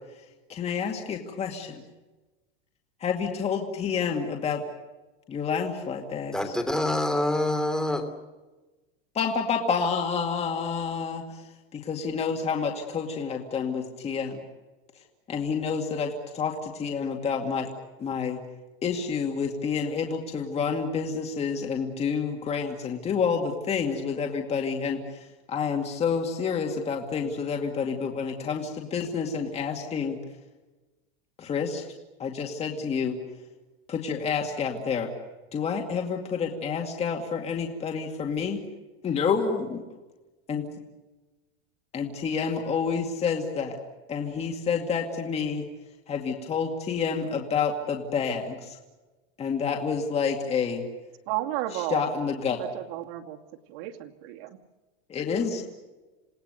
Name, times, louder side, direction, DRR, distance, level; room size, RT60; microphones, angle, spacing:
voice 1, 0.5-1.8 3.0-4.6 5.3-6.4 9.1-11.4 11.7-14.4 15.3-17.7 18.0-18.4 18.8-25.2 25.5-30.2 31.4-31.8 32.2-33.2 33.9-35.1 35.5-38.6 39.0-39.8 40.5-40.6 41.9-43.8 44.1-45.7 46.1-48.8 49.4-50.8 51.7-52.6 55.1-55.6, left 6 dB, 20° left, 2 dB, 2.3 m, -29 dB
voice 2, 6.3-8.1, left 1 dB, ahead, 5 dB, 3.0 m, -26 dB
voice 3, 51.3-52.1 52.6-53.4 53.7-54.6, right 14 dB, 65° right, 4 dB, 2.4 m, -32 dB
28.0 x 18.5 x 8.1 m, 1.2 s
supercardioid pair, 155°, 30 cm